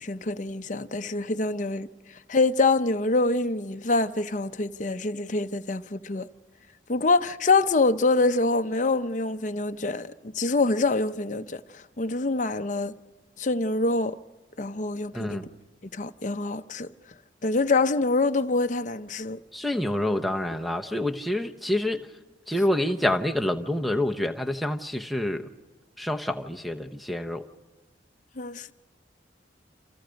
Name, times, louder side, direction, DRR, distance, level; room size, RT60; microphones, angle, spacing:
voice 1, 0.0-6.3 6.9-12.9 13.4-14.2 14.6-15.5 15.9-16.9 17.4-19.4 28.4-28.7, left 3 dB, 40° left, 0.7 m, -25 dB
voice 2, 15.1-15.5 19.5-22.1 22.5-25.5 26.0-27.4, left 1 dB, ahead, 0.9 m, -27 dB
29.0 x 27.5 x 5.2 m
head